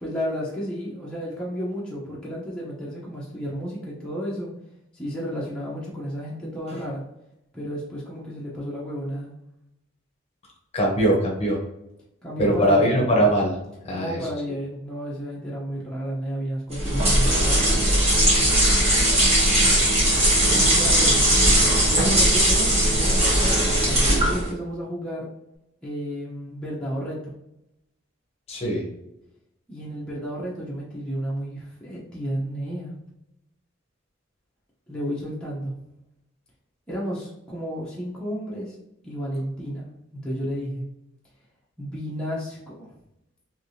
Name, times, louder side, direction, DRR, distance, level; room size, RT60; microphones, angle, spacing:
voice 1, 0.0-4.5 4.9-7.0 7.5-9.3 12.2-13.0 13.9-17.7 20.4-21.2 21.8-25.3 25.8-27.3 29.7-32.9 34.9-35.7 36.9-38.8 39.0-39.8 40.1-40.8 41.8-42.9, equal, 5° left, -7 dB, 0.7 m, -32 dB
voice 2, 10.7-11.6 12.4-13.5 13.8-14.2 28.5-28.9, right 1 dB, 30° left, -1 dB, 0.8 m, -21 dB
sound 1, 16.7-24.5, right 1 dB, 30° right, 1.3 m, -19 dB
3.3 x 2.7 x 2.6 m, 0.86 s
head